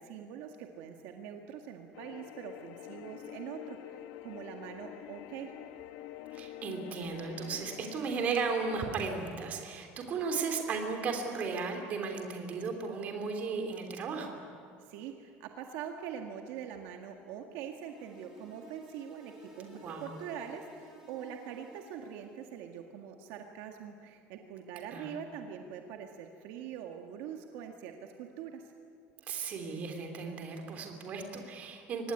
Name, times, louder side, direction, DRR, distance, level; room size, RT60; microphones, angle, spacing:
voice 1, 0.0-5.5 14.8-28.7, right 8 dB, 70° right, 3 dB, 1.8 m, -43 dB
sound 1, 1.9-8.0, left 12 dB, 80° left, 1.2 m, -47 dB
voice 2, 6.3-14.4 19.8-20.1 24.9-25.2 29.3-32.1, right 4 dB, 35° right, 4 dB, 3.2 m, -35 dB
sound 2, 17.7-22.5, equal, 5° right, 7.8 m, -54 dB
24.5 x 19.0 x 9.7 m, 2.3 s
cardioid pair, 180°, 5 cm